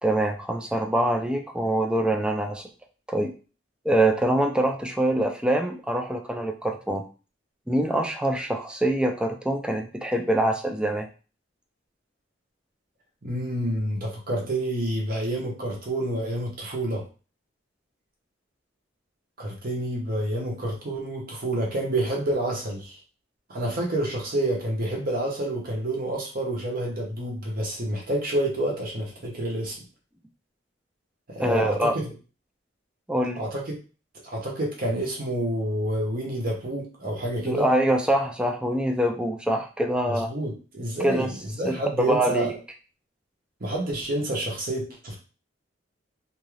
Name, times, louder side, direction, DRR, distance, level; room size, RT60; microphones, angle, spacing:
voice 1, 0.0-2.7 3.1-3.3 3.8-7.0 7.7-11.1 31.4-31.9 33.1-33.4 37.4-40.3 41.0-41.3 41.6-42.5, right 1 dB, 5° right, 4 dB, 0.3 m, -24 dB
voice 2, 13.2-17.0 19.4-23.0 23.5-29.8 31.3-32.1 33.4-33.7 34.2-37.7 40.1-42.5 43.6-45.2, right 1 dB, 50° right, -2 dB, 0.8 m, -28 dB
2.6 x 2.3 x 3.1 m, 0.36 s
head